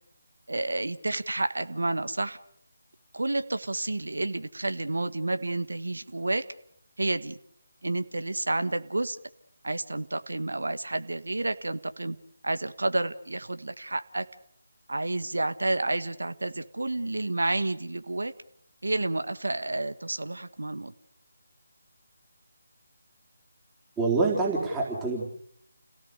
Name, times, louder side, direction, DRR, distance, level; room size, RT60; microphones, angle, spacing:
voice 1, 0.5-2.4 3.1-6.5 7.0-7.4 7.8-9.2 9.6-12.2 12.4-14.2 14.9-18.3 18.8-20.9, right 2 dB, 70° right, 10 dB, 1.7 m, -30 dB
voice 2, 24.0-25.4, right 3 dB, 10° right, -4 dB, 4.2 m, -26 dB
30.0 x 17.5 x 6.9 m, 0.68 s
figure-of-eight pair, 155°, 0 cm